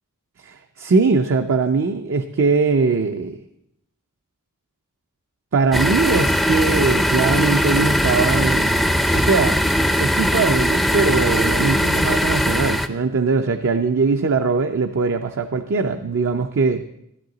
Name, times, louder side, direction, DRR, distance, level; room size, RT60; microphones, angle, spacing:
voice 1, 0.4-3.4 5.5-9.6 10.0-16.8, right 4 dB, 60° right, 6 dB, 0.5 m, -21 dB
sound 1, 5.7-12.9, equal, ahead, 0.4 m, -19 dB
13.5 x 12.0 x 3.9 m, 0.79 s
head